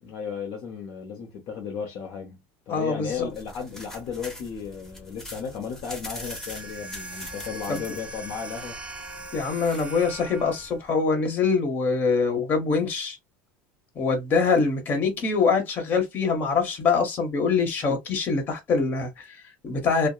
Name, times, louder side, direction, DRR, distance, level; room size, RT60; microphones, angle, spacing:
voice 1, 0.0-2.4 2.7-8.8, left 6 dB, 55° left, 0.7 m, -34 dB
voice 2, 2.7-3.3 7.7-7.8 9.3-13.2 13.9-20.1, left 4 dB, 35° left, 1.1 m, -24 dB
sound 1, 3.0-10.9, left 1 dB, 10° left, 1.0 m, -43 dB
sound 2, 6.0-10.8, right 2 dB, 20° right, 0.5 m, -40 dB
2.7 x 2.1 x 2.3 m
supercardioid pair, 130°, 6 cm